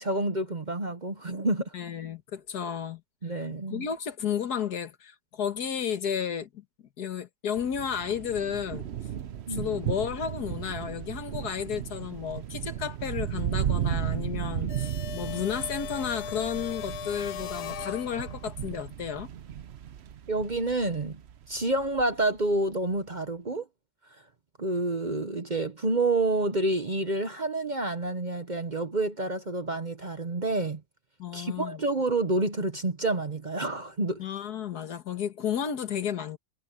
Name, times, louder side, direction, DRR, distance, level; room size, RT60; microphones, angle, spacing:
voice 1, 0.0-1.7 3.2-3.9 9.5-9.7 20.3-21.2 21.5-23.7 24.6-30.8 31.3-34.2, right 2 dB, 35° right, 1.0 m, -28 dB
voice 2, 1.7-3.0 3.7-6.6 7.0-8.9 9.5-19.3 31.2-31.8 34.2-36.4, left 8 dB, 80° left, 2.0 m, -32 dB
sound 1, 7.6-22.1, right 10 dB, 55° right, 0.8 m, -35 dB
sound 2, 14.7-18.6, left 9 dB, 60° left, 0.7 m, -39 dB
omnidirectional pair, 1.7 m